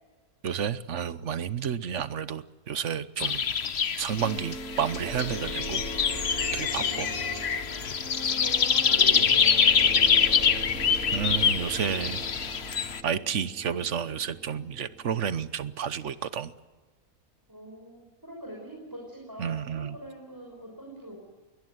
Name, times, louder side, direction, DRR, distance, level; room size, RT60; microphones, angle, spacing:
voice 1, 0.4-3.5 4.0-5.8 6.5-7.1 11.1-12.2 13.0-16.5 19.4-20.0, right 8 dB, 55° right, 14 dB, 1.1 m, -31 dB
sound 1, 3.2-13.0, left 7 dB, 50° left, 1.1 m, -25 dB
sound 2, 4.2-15.8, right 1 dB, 75° right, 4.5 m, -39 dB
voice 2, 6.7-7.5 8.3-10.2 17.5-21.2, right 1 dB, 15° right, -1 dB, 5.9 m, -43 dB
22.0 x 19.0 x 9.5 m, 1.3 s
omnidirectional pair, 1.6 m